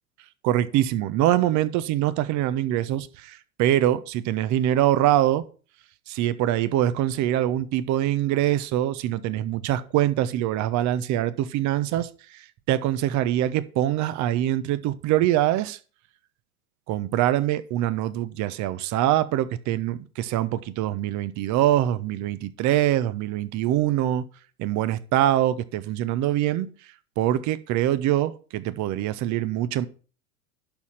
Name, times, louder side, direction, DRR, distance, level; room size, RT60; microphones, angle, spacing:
voice 1, 0.4-5.4 6.1-15.8 16.9-24.2 24.6-26.7 27.2-29.9, right 13 dB, 40° right, 1.0 m, -24 dB
11.5 x 4.2 x 7.3 m
hypercardioid pair, 90°, 42 cm